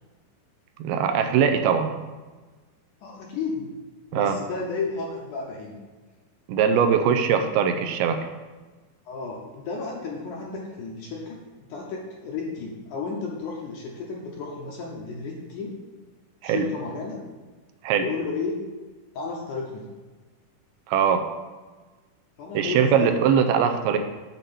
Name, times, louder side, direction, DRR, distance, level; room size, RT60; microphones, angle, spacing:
voice 1, 0.8-1.9 4.1-4.4 6.5-8.2 16.4-16.7 17.8-18.0 20.9-21.3 22.5-24.0, right 7 dB, 80° right, 7 dB, 2.5 m, -21 dB
voice 2, 3.0-3.7 4.1-5.8 9.1-11.4 11.7-15.7 16.4-17.4 18.0-18.7 19.2-19.9 22.4-23.2, left 4 dB, 75° left, -2 dB, 2.0 m, -33 dB
7.6 x 4.2 x 6.9 m, 1.3 s
omnidirectional pair, 4.5 m